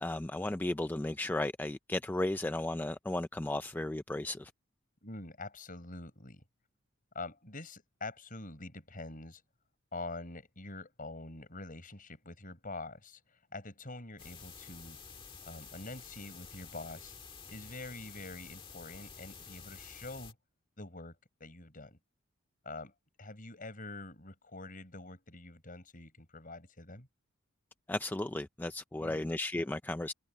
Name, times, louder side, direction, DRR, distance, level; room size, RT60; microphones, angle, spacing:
voice 1, 0.0-4.5 27.9-30.1, left 1 dB, 10° left, 0.3 m, -34 dB
voice 2, 5.0-6.4 7.1-9.4 9.9-15.0 15.5-17.2 17.5-20.4 20.8-22.0 22.6-22.9 23.2-27.1 29.0-29.3, left 2 dB, 40° left, 6.5 m, -45 dB
Tape hiss (clicky), 14.2-20.3, left 5 dB, 25° left, 1.7 m, -50 dB
head